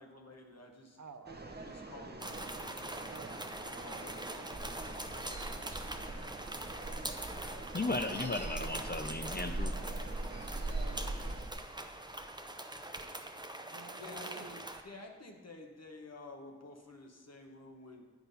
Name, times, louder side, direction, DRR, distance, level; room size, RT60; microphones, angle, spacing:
voice 1, 0.0-1.0 1.6-2.7 3.6-5.4 14.0-14.6 14.8-18.0, left 2 dB, 60° left, 2 dB, 1.1 m, -52 dB
voice 2, 1.0-1.6 3.1-3.8 13.7-14.7, right 5 dB, 80° right, 8 dB, 0.7 m, -52 dB
sound 1, 1.3-11.5, right 2 dB, 35° right, 0.9 m, -48 dB
sound 2, 2.2-14.8, right 1 dB, 15° right, 0.7 m, -43 dB
sound 3, 4.5-11.5, right 2 dB, 55° right, 1.3 m, -41 dB
voice 3, 7.7-9.7 10.5-10.8, left 2 dB, 35° left, 7 dB, 0.5 m, -36 dB
9.0 x 5.9 x 5.5 m, 1.4 s
wide cardioid pair, 45°, 29 cm